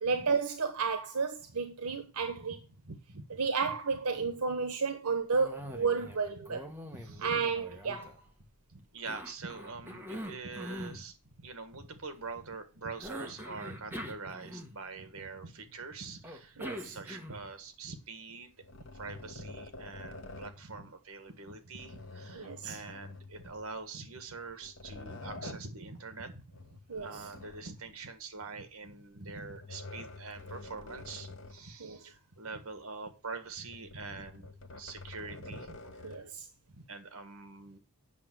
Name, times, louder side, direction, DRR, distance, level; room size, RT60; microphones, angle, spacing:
voice 1, 0.0-2.6 3.4-6.6 7.2-8.1 16.6-17.0 22.3-22.8 26.9-27.2 31.8-32.0 36.0-36.5, right 5 dB, 90° right, 1.0 m, -32 dB
voice 2, 2.2-2.5 2.8-3.3 3.6-3.7 6.9-7.4 8.7-18.5 18.9-36.3 36.7-37.8, right 4 dB, 70° right, 1.6 m, -44 dB
Cough, 5.3-6.2 6.5-8.5 9.1-11.0 13.0-15.0 16.2-17.5, equal, 10° right, 1.3 m, -44 dB
sound 1, 18.6-20.7 21.7-23.9 24.4-25.7 26.5-28.0 29.3-31.7 32.1-32.2 33.6-36.3, left 2 dB, 60° left, 0.9 m, -48 dB
8.5 x 6.4 x 6.1 m
head